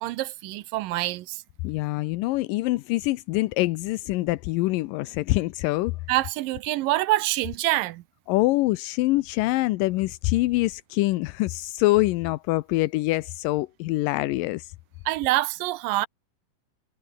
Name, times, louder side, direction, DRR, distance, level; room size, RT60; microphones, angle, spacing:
voice 1, 0.0-1.4 6.1-8.0 15.1-16.1, right 17 dB, 90° right, 2.5 m, -26 dB
voice 2, 1.6-5.9 8.3-14.7, left 19 dB, 85° left, 2.3 m, -25 dB
omnidirectional pair, 3.9 m